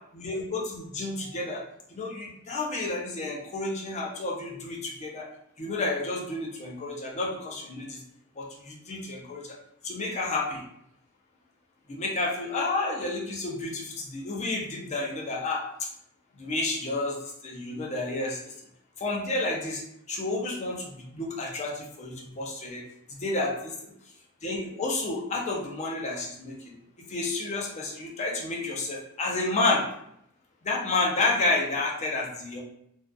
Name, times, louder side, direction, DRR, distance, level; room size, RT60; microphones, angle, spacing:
voice 1, 0.1-1.6 1.9-5.3 5.6-8.0 8.4-9.5 9.8-10.6 11.9-15.9 16.4-17.2 17.4-18.5 19.0-22.8 23.1-23.7 24.4-26.7 27.1-29.8 30.6-32.6, left 2 dB, 30° left, -2 dB, 0.5 m, -30 dB
2.5 x 2.3 x 2.3 m, 0.73 s
head